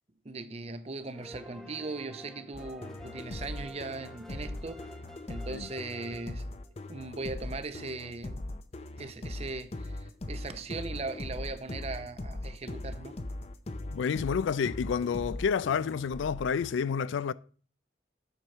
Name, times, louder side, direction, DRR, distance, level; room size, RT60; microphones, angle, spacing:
voice 1, 0.2-4.8 5.3-6.5 6.9-8.5 9.0-13.2, right 3 dB, 35° right, 0.6 m, -39 dB
sound 1, 1.1-7.0, equal, 5° left, 0.8 m, -49 dB
sound 2, 2.5-16.7, left 1 dB, 35° left, 0.6 m, -40 dB
voice 2, 13.9-17.3, left 6 dB, 80° left, 0.3 m, -29 dB
8.1 x 4.5 x 6.3 m
head